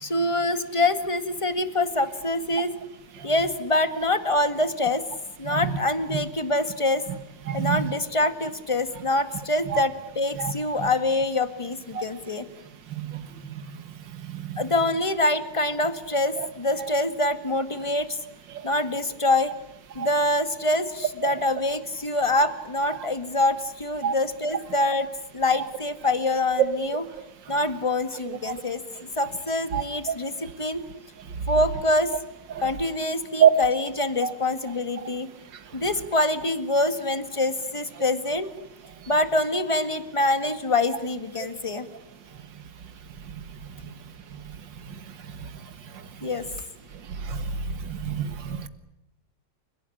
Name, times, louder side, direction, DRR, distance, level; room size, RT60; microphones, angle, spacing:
voice 1, 0.0-2.8 3.2-5.0 5.4-7.0 7.5-12.5 14.6-18.2 18.6-19.5 20.0-25.1 25.3-27.0 27.5-28.8 29.2-30.9 31.5-32.1 32.6-35.3 35.7-38.5 39.1-41.9 46.2-46.5, left 2 dB, 15° left, 1.9 m, -25 dB
voice 2, 7.5-7.8 9.7-9.8 10.4-10.5 13.1-13.2 14.3-14.4 18.5-18.6 20.0-20.1 24.0-24.1 28.5-28.6 29.7-29.8 33.4-33.5 34.2-34.3 47.3-47.4 47.9-48.7, right 9 dB, 80° right, 2.3 m, -23 dB
30.0 x 17.5 x 10.0 m
omnidirectional pair, 2.0 m